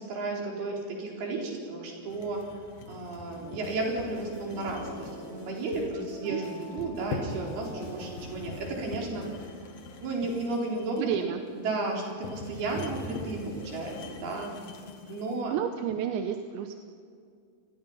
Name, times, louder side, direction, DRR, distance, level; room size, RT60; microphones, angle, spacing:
voice 1, 0.0-2.4 2.9-9.3 10.0-11.3 11.5-14.5 15.1-15.6, right 2 dB, 50° right, -1 dB, 5.8 m, -33 dB
sound 1, 2.1-15.4, left 3 dB, 55° left, 1.9 m, -43 dB
sound 2, 3.3-9.3, left 1 dB, 35° left, 6.1 m, -44 dB
voice 2, 5.9-6.4 11.0-11.4 15.5-16.8, right 9 dB, 75° right, 5 dB, 3.0 m, -31 dB
28.0 x 20.5 x 5.7 m, 2.3 s
omnidirectional pair, 5.8 m